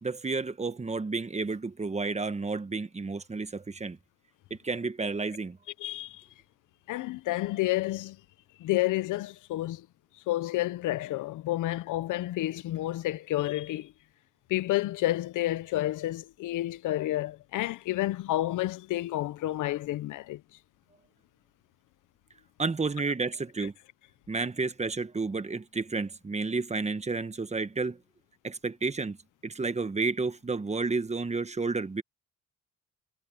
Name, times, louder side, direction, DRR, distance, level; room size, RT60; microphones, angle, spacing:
voice 1, 0.0-4.0 4.5-5.6 22.6-23.7 24.3-28.0 28.4-29.2 29.4-32.0, right 4 dB, 20° right, 1.3 m, -31 dB
voice 2, 5.8-6.3 6.9-8.2 8.6-9.9 10.3-13.9 14.5-20.4, left 16 dB, 85° left, 0.8 m, -30 dB
cardioid pair, 90°, 30 cm